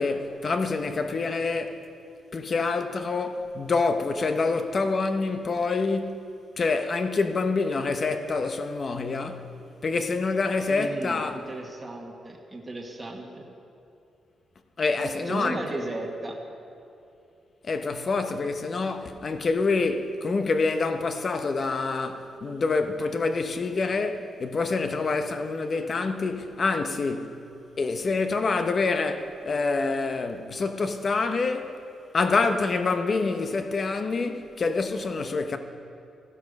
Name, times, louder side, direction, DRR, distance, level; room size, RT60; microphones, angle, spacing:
voice 1, 0.0-1.8 2.3-6.2 6.6-9.5 9.8-11.4 14.8-15.8 17.6-27.4 27.8-31.7 32.1-35.6, left 3 dB, 40° left, 0.8 m, -26 dB
voice 2, 10.7-13.4 15.2-16.4, right 2 dB, 15° right, 1.4 m, -35 dB
14.5 x 11.5 x 5.3 m
cardioid pair, 125°, 0 cm